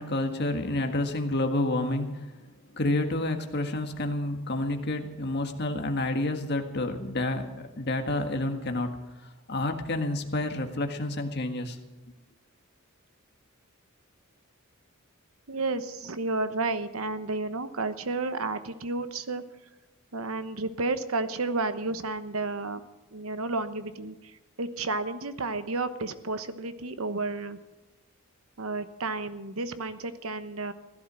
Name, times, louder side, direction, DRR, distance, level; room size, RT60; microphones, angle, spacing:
voice 1, 0.0-2.3 2.7-9.0 9.5-11.8, left 2 dB, 50° left, 5 dB, 1.7 m, -29 dB
voice 2, 15.5-19.4 20.1-22.8 23.1-27.6 28.6-30.7, right 3 dB, 80° right, 11 dB, 1.1 m, -31 dB
16.5 x 11.5 x 6.2 m, 1.1 s
head